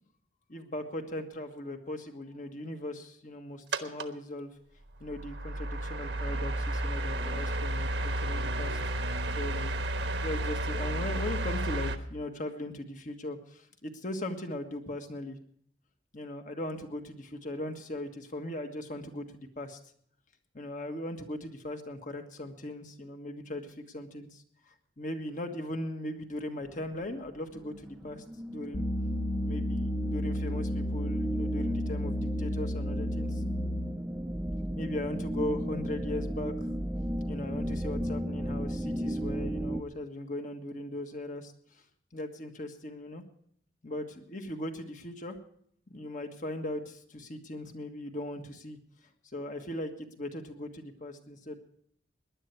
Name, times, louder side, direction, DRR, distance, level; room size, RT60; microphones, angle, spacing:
voice 1, 0.5-4.5 5.0-8.8 9.4-9.7 10.0-15.4 16.1-19.8 20.5-24.4 25.0-28.8 29.4-33.4 34.8-36.5 37.3-41.5 42.1-43.2 43.8-45.4 45.9-48.8 49.3-51.6, left 1 dB, 45° left, 5 dB, 1.5 m, -38 dB
sound 1, 3.7-4.1 4.9-12.0, right 1 dB, 85° right, 1.2 m, -32 dB
sound 2, 26.6-39.8, equal, 10° right, 0.5 m, -35 dB
sound 3, 28.7-34.0, left 1 dB, 70° left, 1.0 m, -32 dB
19.0 x 11.0 x 4.5 m, 0.66 s
head